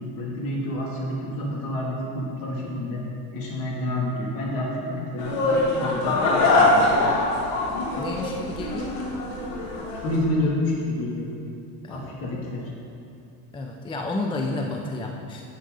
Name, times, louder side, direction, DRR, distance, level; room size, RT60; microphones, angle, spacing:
voice 1, 0.0-3.0 3.3-5.3 5.8-7.0 9.9-11.3 11.9-12.7, left 1 dB, 50° left, -3 dB, 2.7 m, -29 dB
sound 1, 5.2-10.2, left 2 dB, 80° left, 2.3 m, -23 dB
voice 2, 8.0-9.0 11.8-12.1 13.5-15.5, left 2 dB, 10° left, 1 dB, 0.5 m, -31 dB
11.5 x 8.0 x 4.0 m, 2.6 s
supercardioid pair, 125°, 47 cm